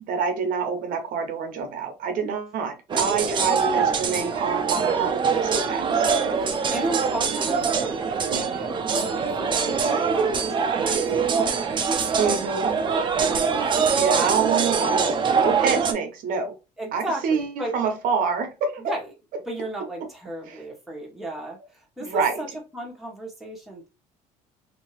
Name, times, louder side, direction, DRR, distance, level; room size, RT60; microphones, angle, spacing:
voice 1, 0.1-6.0 8.3-8.5 12.2-12.8 14.0-16.5 16.9-18.8 20.5-20.6 22.0-22.3, right 6 dB, 65° right, 0.8 m, -27 dB
sound 1, 2.9-15.9, right 5 dB, 30° right, 0.6 m, -23 dB
voice 2, 3.4-4.0 6.4-11.7 12.1-12.4 13.1-14.0 14.8-15.4 16.8-17.7 18.8-19.1 19.4-22.5 22.7-23.9, right 1 dB, ahead, 1.2 m, -35 dB
2.8 x 2.7 x 3.1 m
cardioid pair, 115°, 15 cm